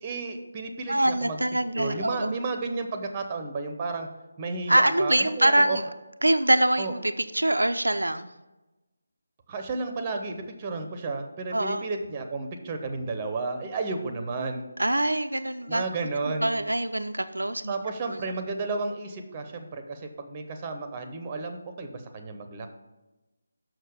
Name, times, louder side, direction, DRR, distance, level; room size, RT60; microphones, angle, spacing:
voice 1, 0.0-1.4 1.8-4.1 4.4-5.8 6.8-6.9 9.5-14.7 15.7-16.6 17.7-22.7, right 3 dB, 20° right, 6 dB, 0.7 m, -32 dB
voice 2, 0.9-2.4 4.7-5.9 6.2-8.3 11.5-11.8 14.8-15.8 16.4-17.7 18.0-18.2, right 1 dB, 75° right, 8 dB, 0.4 m, -24 dB
6.5 x 6.2 x 5.1 m, 1.1 s
figure-of-eight pair, 155°, 0 cm